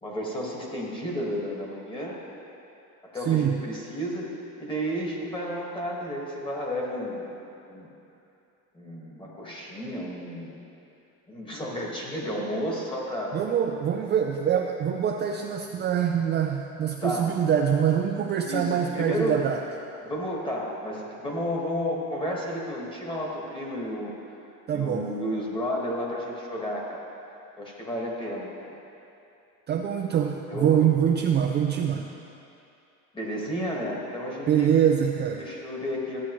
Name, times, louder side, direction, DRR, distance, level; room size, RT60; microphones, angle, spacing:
voice 1, 0.0-2.2 3.1-4.3 4.6-7.3 7.7-7.9 8.7-10.6 11.3-13.4 17.0-17.3 18.4-19.4 20.0-24.1 24.7-27.1 27.6-28.7 30.5-30.8 33.1-34.7 35.4-36.2, equal, 15° left, -3 dB, 1.7 m, -32 dB
voice 2, 3.3-3.6 13.3-19.6 24.7-25.1 29.7-32.1 34.5-35.5, right 8 dB, 30° right, 1 dB, 0.4 m, -24 dB
14.0 x 8.5 x 3.1 m, 2.8 s
cardioid pair, 140°, 34 cm